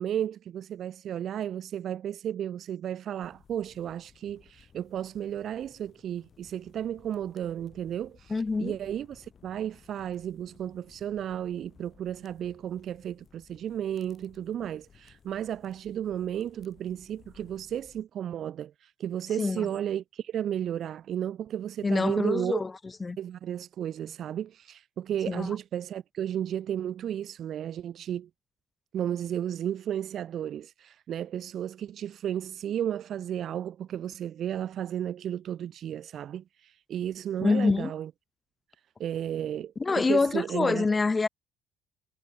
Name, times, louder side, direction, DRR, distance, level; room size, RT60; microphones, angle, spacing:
voice 1, 0.0-22.6 23.2-28.3 28.9-38.1 39.0-40.9, right 10 dB, 60° right, 0.8 m, -33 dB
sound 1, 3.2-18.0, left 7 dB, 45° left, 5.8 m, -59 dB
voice 2, 8.3-8.8 19.4-19.7 21.8-22.7 23.0-23.2 25.3-25.5 37.4-37.9 39.8-41.3, left 4 dB, 25° left, 1.6 m, -26 dB
hypercardioid pair, 55°, 0 cm